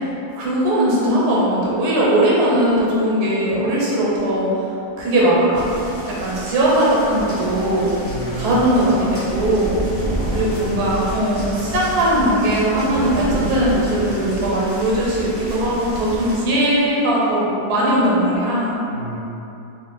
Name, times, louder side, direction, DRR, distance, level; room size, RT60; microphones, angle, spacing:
voice 1, 0.4-4.5 5.0-5.6 6.2-8.0 8.4-9.8 10.3-18.8, right 1 dB, 80° right, -6 dB, 1.3 m, -19 dB
sound 1, 5.5-16.4, right 1 dB, 15° left, 0.5 m, -29 dB
voice 2, 8.0-8.6 10.0-10.9 18.9-19.2, left 1 dB, 60° right, -5 dB, 0.8 m, -32 dB
2.8 x 2.6 x 3.7 m, 2.9 s
omnidirectional pair, 1.7 m